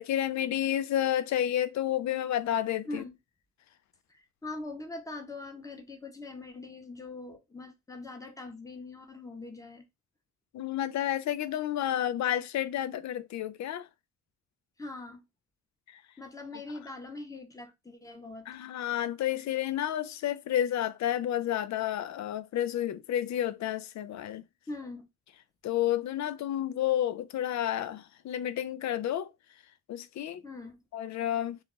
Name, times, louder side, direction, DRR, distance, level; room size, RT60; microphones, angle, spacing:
voice 1, 0.0-3.0 10.5-13.9 18.5-24.4 25.6-29.3 29.9-30.4 30.9-31.6, left 11 dB, 60° left, 0.4 m, -30 dB
voice 2, 2.8-3.2 4.1-9.8 14.8-15.2 16.2-18.5 24.7-25.1 30.4-30.8, left 2 dB, 10° left, 0.9 m, -42 dB
2.4 x 2.3 x 3.8 m
cardioid pair, 75°, 31 cm